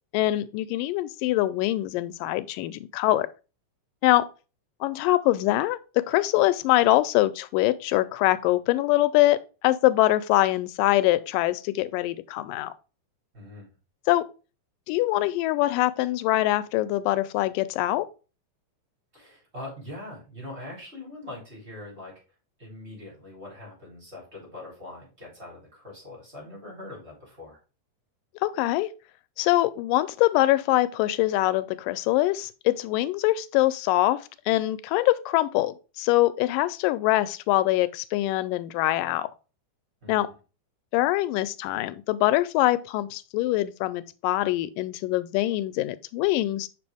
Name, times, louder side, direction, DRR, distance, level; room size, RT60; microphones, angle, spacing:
voice 1, 0.1-3.3 4.0-4.3 4.8-9.4 9.6-12.7 14.1-14.3 14.9-18.1 28.4-28.9 29.4-39.3 40.1-40.3 40.9-46.7, left 16 dB, 90° left, 2.2 m, -23 dB
voice 2, 13.3-13.7 19.1-22.1 22.6-27.6 40.0-40.3, left 2 dB, 20° right, 3.9 m, -42 dB
6.0 x 5.0 x 3.4 m
omnidirectional pair, 3.8 m